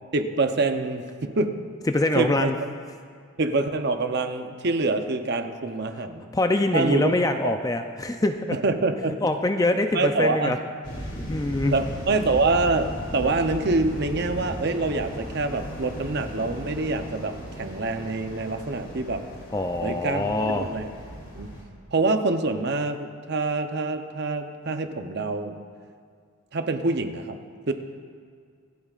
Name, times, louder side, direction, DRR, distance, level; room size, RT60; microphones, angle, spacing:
voice 1, 0.1-1.5 2.1-2.5 3.4-6.3 6.7-7.1 7.4-7.5 8.5-9.2 9.9-10.5 11.7-19.2 19.8-20.9 21.3-21.5 21.9-25.6 26.5-27.4 27.7-27.8, right 3 dB, 50° right, 7 dB, 0.7 m, -25 dB
voice 2, 1.9-2.6 6.3-8.6 9.2-10.6 11.3-11.8 19.5-20.7, left 2 dB, 15° left, 6 dB, 0.4 m, -24 dB
sound 1, 10.8-21.6, equal, 55° left, 2.9 m, -37 dB
26.0 x 8.8 x 2.4 m, 2.2 s
head